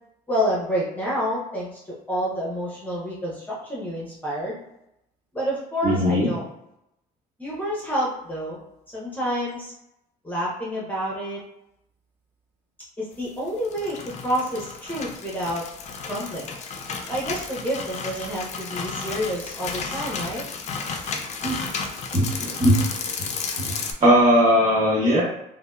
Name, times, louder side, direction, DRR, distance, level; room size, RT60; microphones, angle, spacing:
voice 1, 0.3-1.8 2.1-4.6 5.3-6.5 7.4-8.6 8.9-9.7 10.2-11.4 13.0-15.6 16.1-16.5 17.1-20.4, equal, 10° left, -6 dB, 0.8 m, -28 dB
voice 2, 5.8-6.3 21.4-21.6 22.1-22.8 23.2-23.3 24.0-25.2, equal, 45° right, -6 dB, 1.4 m, -18 dB
sound 1, 13.5-23.9, left 5 dB, 40° left, 0.4 m, -33 dB
2.7 x 2.1 x 2.2 m, 0.83 s
cardioid pair, 110°, 17 cm